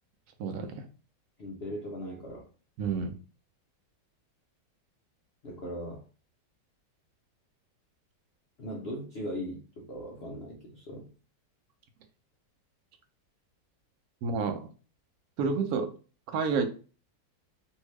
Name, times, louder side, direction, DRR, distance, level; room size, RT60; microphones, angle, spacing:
voice 1, 0.4-0.7 2.8-3.1 14.2-14.7 15.4-15.9 16.3-16.6, right 5 dB, 70° right, 6 dB, 0.9 m, -29 dB
voice 2, 1.4-2.5 5.4-6.0 8.6-11.1, equal, 65° left, -2 dB, 0.6 m, -39 dB
2.7 x 2.7 x 3.1 m, 0.36 s
omnidirectional pair, 1.9 m